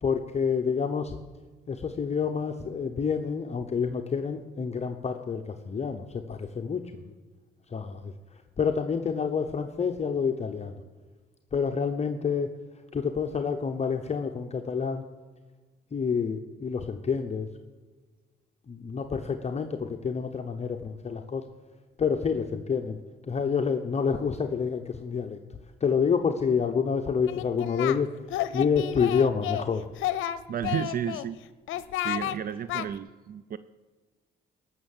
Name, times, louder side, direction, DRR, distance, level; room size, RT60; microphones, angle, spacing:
voice 1, 0.0-1.2 1.7-7.1 7.7-8.1 8.6-10.8 11.5-12.5 12.9-15.0 15.9-17.5 18.7-21.4 22.0-23.0 23.3-25.4 25.8-28.1 28.5-29.9, left 6 dB, 35° left, 5 dB, 0.9 m, -28 dB
Singing, 27.3-28.0 28.3-29.7 30.0-31.3 31.7-32.4 32.7-32.9, left 12 dB, 85° left, 0.6 m, -31 dB
voice 2, 30.5-31.4 32.0-33.6, right 9 dB, 50° right, 14 dB, 0.5 m, -32 dB
17.5 x 6.7 x 7.3 m, 1.3 s
cardioid pair, 90°, 20 cm